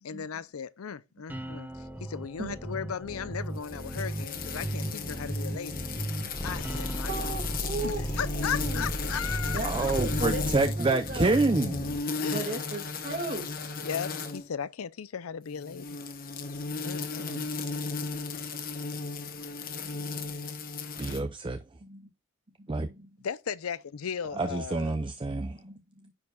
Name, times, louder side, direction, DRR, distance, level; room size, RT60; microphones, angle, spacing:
voice 1, 0.0-5.7 6.4-7.1 7.8-9.6 12.2-12.5 13.8-16.0 16.8-17.4 23.2-24.9, left 7 dB, 85° left, 0.5 m, -36 dB
sound 1, 1.3-12.0, right 1 dB, 10° right, 0.9 m, -37 dB
voice 2, 2.4-2.8 6.9-8.9 9.5-11.4 12.2-13.5 17.3-17.4 21.8-22.1 22.6-23.2 25.4-26.1, right 2 dB, 40° right, 2.2 m, -38 dB
sound 2, 3.6-14.5 15.5-21.2, left 4 dB, 45° left, 1.0 m, -36 dB
sound 3, 6.3-10.6, equal, 20° left, 1.2 m, -34 dB
voice 3, 9.6-11.8 21.0-21.6 22.7-22.9 24.4-25.6, right 3 dB, 25° right, 0.5 m, -27 dB
9.7 x 4.7 x 2.3 m
head